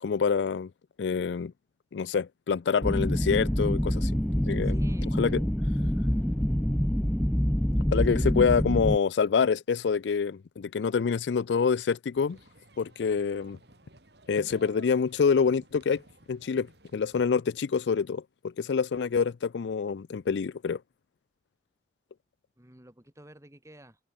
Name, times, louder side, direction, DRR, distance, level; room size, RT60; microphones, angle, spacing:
voice 1, 0.0-0.7 1.0-1.5 1.9-4.1 4.5-4.8 5.2-5.4 7.9-12.4 12.8-13.6 14.3-16.0 16.3-16.7 16.9-20.8, left 5 dB, 80° left, 0.4 m, -26 dB
sound 1, 2.8-9.0, equal, 5° left, 0.4 m, -26 dB
voice 2, 4.6-5.4 22.6-24.0, right 1 dB, 15° right, 3.2 m, -51 dB
basketball crowd, 12.1-17.3, right 2 dB, 70° right, 7.0 m, -55 dB
head